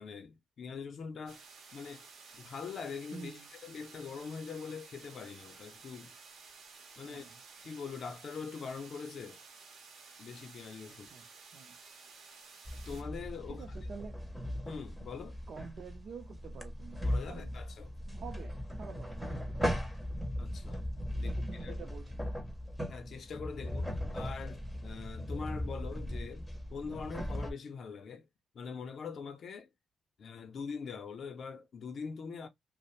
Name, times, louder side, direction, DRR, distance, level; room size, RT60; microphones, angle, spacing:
voice 1, 0.0-1.4 1.7-2.1 2.3-6.1 7.0-7.3 7.6-9.4 10.2-11.1 12.9-13.7 14.6-15.4 17.1-18.0 20.4-20.9 21.2-21.9 22.9-28.3 28.5-29.7 30.2-32.5, left 5 dB, 55° left, 0.5 m, -43 dB
sound 1, 1.3-13.0, right 5 dB, 85° right, 0.8 m, -54 dB
voice 2, 3.1-3.5 7.0-7.4 10.9-11.8 13.5-14.2 15.5-17.0 17.3-17.5 18.1-19.8 21.3-22.3, right 5 dB, 55° right, 0.5 m, -49 dB
sound 2, 12.7-27.5, equal, ahead, 0.6 m, -38 dB
2.5 x 2.0 x 2.9 m
cardioid pair, 130°, 0 cm